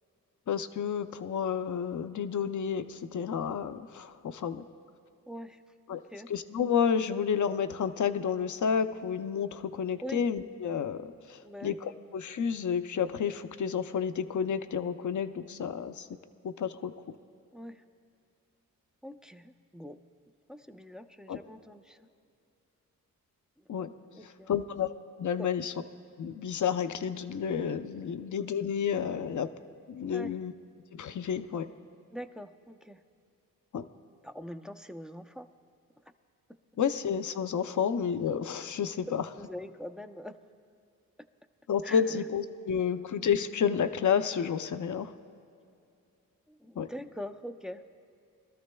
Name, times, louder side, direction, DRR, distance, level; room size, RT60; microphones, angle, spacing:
voice 1, 0.5-4.6 5.9-6.0 6.3-16.1 16.4-16.9 21.3-21.4 23.7-23.9 24.5-24.9 25.2-25.7 26.2-29.5 29.9-30.5 30.9-31.7 33.7-33.9 36.8-39.2 41.7-45.1 46.8-46.9, left 7 dB, 55° left, 10 dB, 0.6 m, -30 dB
voice 2, 5.3-5.6 5.9-6.3 10.0-10.3 11.4-11.8 17.5-17.8 19.0-20.0 20.5-22.0 23.6-23.7 24.1-24.5 25.4-25.5 30.1-30.3 32.1-33.0 34.2-35.5 39.3-40.4 41.8-42.3 42.7-42.8 46.5-47.8, equal, ahead, 6 dB, 0.5 m, -43 dB
22.5 x 13.0 x 2.3 m, 2.6 s
cardioid pair, 60°, 36 cm